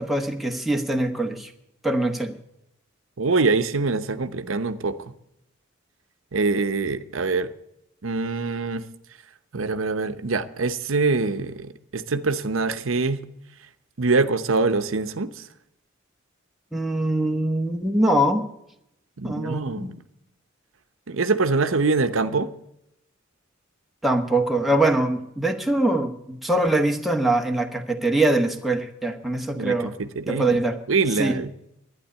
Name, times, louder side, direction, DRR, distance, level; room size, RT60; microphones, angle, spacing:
voice 1, 0.0-1.5 1.8-2.3 16.7-18.5 19.2-20.0 24.0-29.9 30.3-30.8 31.2-31.4, right 1 dB, ahead, 1.2 m, -23 dB
voice 2, 3.2-5.1 6.3-7.5 8.0-8.9 9.5-13.2 14.0-15.5 19.2-19.9 21.1-22.5 29.5-30.6 30.9-31.5, right 3 dB, 80° right, 0.9 m, -24 dB
12.0 x 9.9 x 8.2 m
head